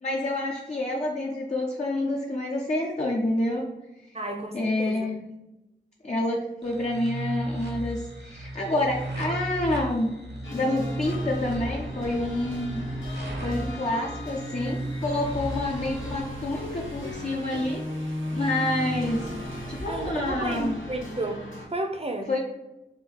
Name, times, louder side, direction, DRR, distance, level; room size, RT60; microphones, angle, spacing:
voice 1, 0.0-3.7 4.5-5.2 6.0-10.1 10.5-12.8 13.4-19.3 19.7-20.8 22.3-22.4, left 1 dB, 35° left, 0.6 m, -28 dB
voice 2, 4.1-5.1 19.9-22.3, right 1 dB, 30° right, 0.6 m, -32 dB
sound 1, 6.6-16.1, right 1 dB, 60° right, 0.9 m, -35 dB
sound 2, 10.4-21.7, left 1 dB, 90° left, 1.0 m, -36 dB
sound 3, 14.0-20.9, right 1 dB, 85° right, 0.7 m, -46 dB
3.6 x 2.3 x 4.4 m
wide cardioid pair, 40°, 20 cm